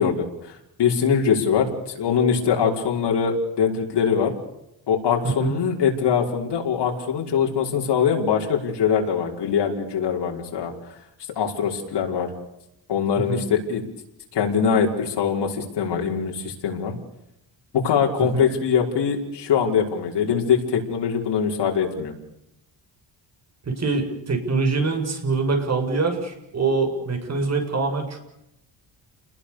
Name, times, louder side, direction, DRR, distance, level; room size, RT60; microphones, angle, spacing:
voice 1, 0.0-4.3 4.9-10.7 11.4-12.3 12.9-13.8 14.3-16.9 17.8-22.1, left 7 dB, 65° left, 0 dB, 5.9 m, -22 dB
voice 2, 5.2-5.6 13.2-13.4 18.2-18.4 23.6-28.2, right 4 dB, 35° right, 5 dB, 7.1 m, -24 dB
30.0 x 21.0 x 7.0 m, 0.83 s
cardioid pair, 145°, 44 cm